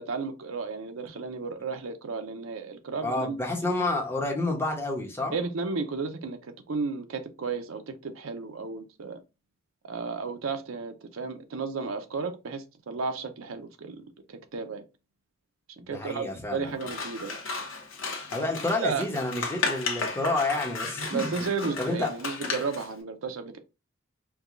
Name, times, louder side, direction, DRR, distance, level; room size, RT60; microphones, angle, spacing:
voice 1, 0.0-3.4 5.3-9.2 9.8-14.8 15.9-17.4 18.8-19.1 21.1-23.6, right 4 dB, 90° right, 0.6 m, -33 dB
voice 2, 3.0-5.4 15.8-16.7 18.3-22.1, left 2 dB, 10° left, 0.9 m, -29 dB
Scissors, 16.8-22.9, left 4 dB, 70° left, 0.9 m, -34 dB
4.7 x 2.3 x 2.5 m
head